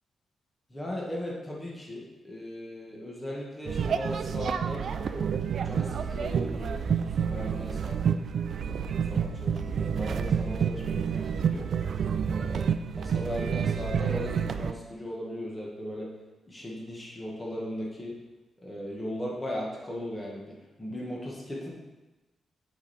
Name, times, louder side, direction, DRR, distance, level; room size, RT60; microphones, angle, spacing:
voice 1, 0.7-4.9 5.1-5.3 5.6-6.8 7.2-8.2 8.6-11.6 12.3-12.6 13.0-16.1 16.5-18.1 18.6-21.7, left 1 dB, 15° left, -3 dB, 1.6 m, -38 dB
sound 1, 3.7-14.7, right 7 dB, 55° right, 0.4 m, -29 dB
9.7 x 5.2 x 4.3 m, 1.1 s
wide cardioid pair, 135°, 0 cm